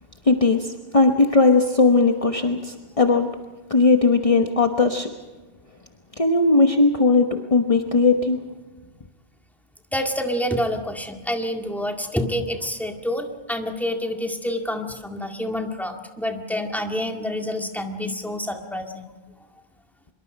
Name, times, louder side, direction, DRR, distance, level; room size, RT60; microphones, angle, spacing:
voice 1, 0.3-3.3 3.7-5.1 6.2-8.4, left 3 dB, 35° left, 4 dB, 1.2 m, -18 dB
voice 2, 9.9-19.0, left 1 dB, ahead, 3 dB, 2.0 m, -27 dB
24.5 x 22.5 x 5.3 m, 1.3 s
omnidirectional pair, 1.0 m